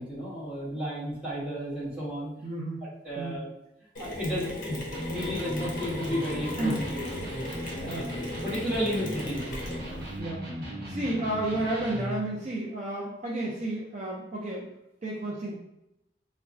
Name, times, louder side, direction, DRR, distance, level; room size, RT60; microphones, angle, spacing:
voice 1, 0.0-2.4 3.0-3.5 4.0-4.8 5.1-7.0 7.8-8.0 8.4-9.5, equal, 5° right, -9 dB, 1.3 m, -32 dB
voice 2, 2.4-2.8 3.2-3.4 6.6-6.8 7.9-8.1 10.2-10.6 10.8-14.7 15.0-15.5, right 1 dB, 40° right, -4 dB, 0.5 m, -32 dB
Mechanisms, 3.9-10.2, left 1 dB, 45° left, 0.8 m, -38 dB
Electric guitar, 4.9-12.2, equal, 60° right, 1.1 m, -37 dB
4.6 x 2.2 x 2.5 m, 0.87 s
head